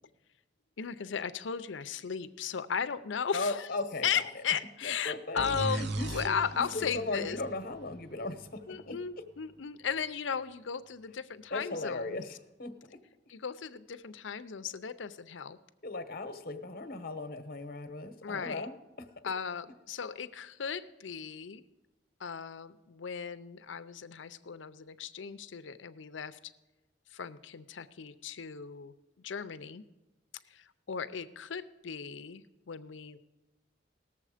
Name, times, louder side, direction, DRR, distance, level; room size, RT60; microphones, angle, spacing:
voice 1, 0.8-3.7 4.0-7.4 8.7-12.2 13.3-15.6 18.2-18.7 19.2-21.6 22.2-26.4 27.1-29.8 30.5-33.2, left 7 dB, 80° left, 13 dB, 0.6 m, -36 dB
voice 2, 3.3-4.3 4.8-9.0 11.5-12.7 15.8-19.1, left 2 dB, 50° left, 10 dB, 1.0 m, -37 dB
sound 1, 5.4-9.0, right 2 dB, 65° right, 0.7 m, -38 dB
18.5 x 7.0 x 5.0 m, 1.1 s
head